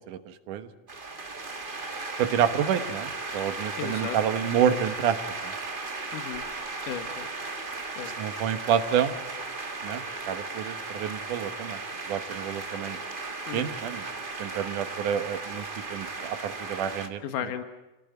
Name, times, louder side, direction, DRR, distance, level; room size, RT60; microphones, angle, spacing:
voice 1, 0.1-0.7 2.2-5.2 5.4-5.5 8.2-9.2 9.8-11.8 12.1-13.0 13.5-14.0 14.4-17.2, right 9 dB, 80° right, 10 dB, 2.8 m, -28 dB
sound 1, 0.9-17.1, right 3 dB, 35° right, 0.8 m, -36 dB
voice 2, 3.8-4.2 6.1-6.4 6.8-7.3 8.0-8.1 13.5-13.7 17.2-17.6, left 9 dB, 85° left, 8 dB, 2.9 m, -34 dB
29.0 x 18.0 x 9.1 m, 1.1 s
omnidirectional pair, 3.6 m